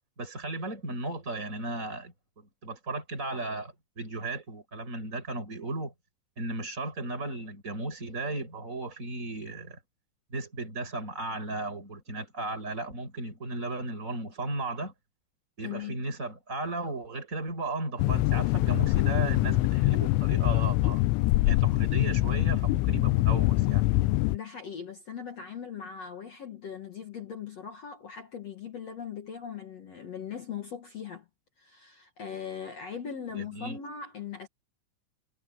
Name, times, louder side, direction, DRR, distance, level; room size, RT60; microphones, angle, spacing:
voice 1, 0.2-5.9 6.4-9.8 10.3-14.9 15.6-21.0 21.5-23.8 33.3-33.8, right 2 dB, 15° right, 7.3 m, -35 dB
voice 2, 15.6-16.0 24.3-31.2 31.6-34.5, left 7 dB, 65° left, 1.6 m, -40 dB
sound 1, 18.0-24.4, left 19 dB, 85° left, 3.1 m, -24 dB
omnidirectional pair, 5.6 m